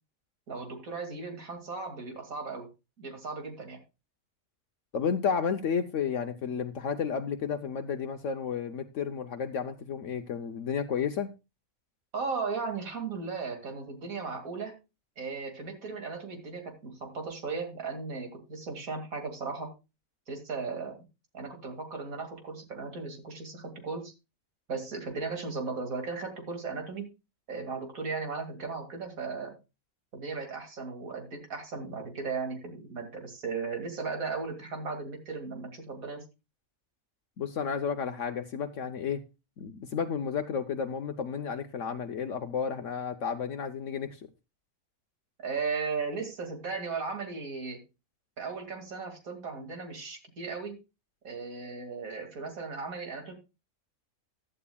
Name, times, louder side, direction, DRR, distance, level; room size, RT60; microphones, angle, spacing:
voice 1, 0.5-2.7 3.0-3.8 12.1-14.7 15.2-19.7 20.3-21.0 21.3-24.1 24.7-27.1 27.5-29.6 30.1-36.2 45.4-47.8 48.4-50.8 51.2-53.3, right 4 dB, 85° right, 2.7 m, -36 dB
voice 2, 4.9-11.3 37.4-39.2 39.6-44.2, left 6 dB, 65° left, 1.1 m, -32 dB
15.5 x 11.5 x 2.3 m
omnidirectional pair, 1.4 m